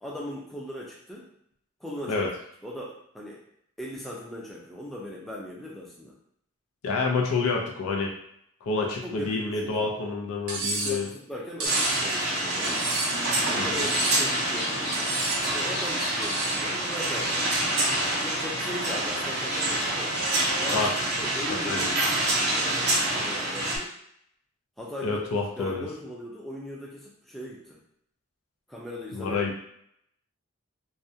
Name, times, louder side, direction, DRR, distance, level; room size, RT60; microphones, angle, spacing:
voice 1, 0.0-1.3 1.8-2.2 2.6-3.4 3.8-6.1 9.0-9.9 10.6-12.8 13.5-15.1 15.5-17.5 18.2-20.2 20.6-20.9 21.2-23.9 24.8-25.2 25.6-27.8 28.7-29.6, left 1 dB, ahead, -4 dB, 0.3 m, -39 dB
voice 2, 6.8-8.1 8.7-11.1 13.6-13.8 20.7-20.9 21.5-21.9 25.0-25.9 29.1-29.5, left 4 dB, 90° left, 0 dB, 0.5 m, -28 dB
Cutlery silverware, 10.5-11.0 11.6-12.0 12.6-13.3 13.8-14.3 14.9-15.4 16.2-16.6, right 2 dB, 85° right, 0.6 m, -30 dB
sound 1, 11.6-23.8, right 1 dB, 45° right, 0.6 m, -27 dB
sound 2, 12.4-20.9, equal, 50° left, 0.7 m, -36 dB
2.4 x 2.1 x 2.6 m, 0.71 s
head